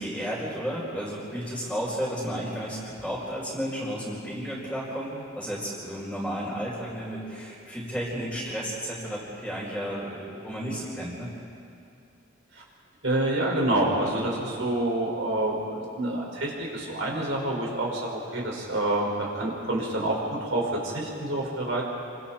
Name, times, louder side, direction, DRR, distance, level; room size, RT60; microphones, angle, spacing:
voice 1, 0.0-5.1 5.4-11.3, equal, 5° right, -9 dB, 4.6 m, -32 dB
voice 2, 13.0-21.8, right 1 dB, 70° right, -2 dB, 5.7 m, -27 dB
29.0 x 25.5 x 4.5 m, 2.6 s
head